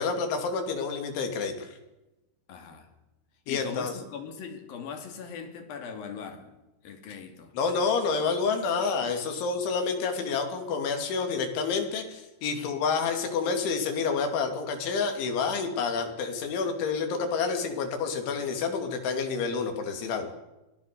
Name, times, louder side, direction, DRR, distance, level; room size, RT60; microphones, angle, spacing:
voice 1, 0.0-1.7 3.5-4.0 7.5-20.3, left 5 dB, 90° left, 5.2 m, -29 dB
voice 2, 2.5-2.9 3.5-6.5 6.8-7.5 12.5-12.7, left 6 dB, 55° left, 4.3 m, -40 dB
24.5 x 18.5 x 6.8 m
omnidirectional pair, 5.2 m